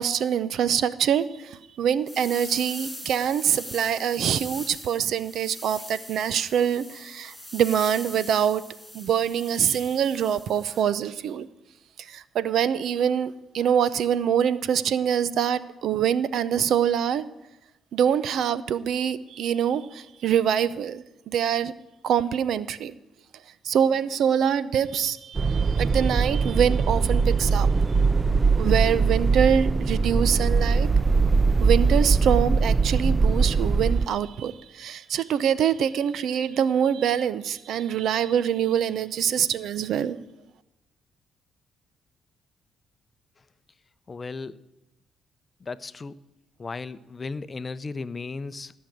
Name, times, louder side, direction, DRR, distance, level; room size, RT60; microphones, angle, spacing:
voice 1, 0.0-8.6 8.9-11.5 12.0-17.2 17.9-21.7 22.0-22.9 23.6-27.7 28.6-30.9 31.6-40.2, right 8 dB, 70° right, 16 dB, 0.6 m, -24 dB
sound 1, 2.1-10.8, equal, 5° left, 6.6 m, -41 dB
sound 2, 25.4-34.1, right 4 dB, 30° right, 0.5 m, -21 dB
voice 2, 44.1-44.6 45.6-46.2 46.6-48.7, left 4 dB, 30° left, 15 dB, 0.6 m, -35 dB
17.5 x 6.5 x 9.2 m, 0.93 s
cardioid pair, 90°, 0 cm